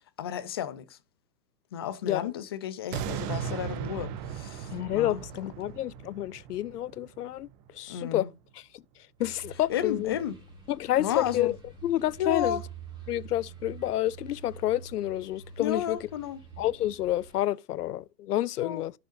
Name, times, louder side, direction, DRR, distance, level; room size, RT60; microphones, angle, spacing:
voice 1, 0.2-1.0 1.7-5.2 7.9-8.3 9.7-10.4 11.0-11.5 12.2-12.6 15.6-16.4 18.6-18.8, left 10 dB, 15° left, 0.4 m, -32 dB
sound 1, 2.9-8.0 8.5-8.6, right 9 dB, 25° right, 0.8 m, -37 dB
voice 2, 4.7-7.5 7.7-8.3 8.7-8.8 9.2-10.2 10.7-11.5 11.8-12.6 13.1-16.0 16.6-18.9, left 13 dB, 65° left, 0.6 m, -29 dB
sound 2, 9.2-17.4, right 6 dB, 10° right, 5.0 m, -46 dB
14.0 x 6.5 x 2.5 m
hypercardioid pair, 120°, 49 cm